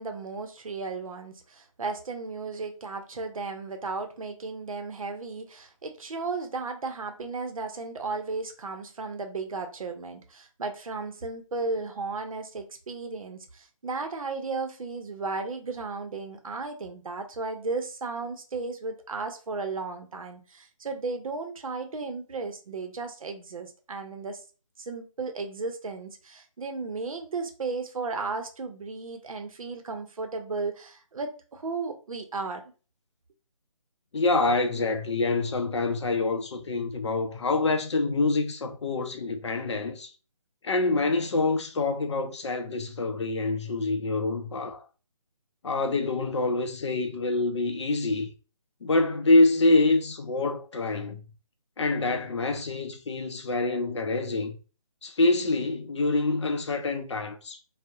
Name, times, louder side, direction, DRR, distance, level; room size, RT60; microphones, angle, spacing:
voice 1, 0.0-24.4 24.8-32.6, right 3 dB, 75° right, 0.6 m, -34 dB
voice 2, 34.1-40.1 40.6-44.8 45.6-48.3 48.8-51.2 51.8-54.5 55.0-57.6, left 2 dB, 55° left, 0.5 m, -26 dB
2.6 x 2.0 x 2.3 m
figure-of-eight pair, 160°, 18 cm